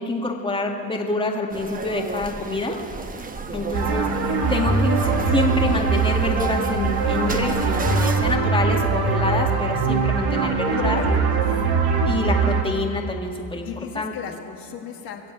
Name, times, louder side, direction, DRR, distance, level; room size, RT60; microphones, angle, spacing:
voice 1, 0.0-2.8 3.5-4.1 4.5-11.0 12.1-13.7 13.9-14.4, left 2 dB, 10° left, 1 dB, 2.0 m, -27 dB
sound 1, 1.5-8.4, right 4 dB, 20° right, 1.0 m, -33 dB
voice 2, 3.5-4.1 10.8-11.4 13.6-15.3, left 8 dB, 50° left, 1 dB, 1.7 m, -35 dB
sound 2, 3.7-12.6, right 4 dB, 55° right, 2.0 m, -21 dB
21.0 x 7.6 x 8.2 m, 2.6 s
supercardioid pair, 85°, 44 cm